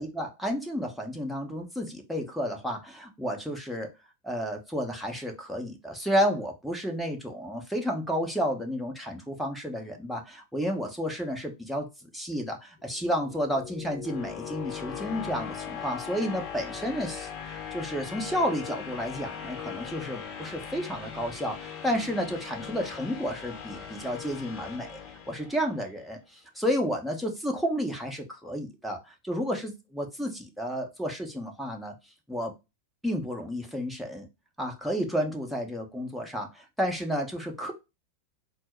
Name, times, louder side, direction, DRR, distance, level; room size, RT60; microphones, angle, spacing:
voice 1, 0.0-3.9 4.2-11.9 12.1-31.9 32.3-32.5 33.0-34.3 34.6-37.7, equal, ahead, 1.1 m, -31 dB
sound 1, 12.9-25.9, left 8 dB, 40° left, 0.8 m, -39 dB
4.2 x 2.0 x 4.5 m
hypercardioid pair, 125°, 0 cm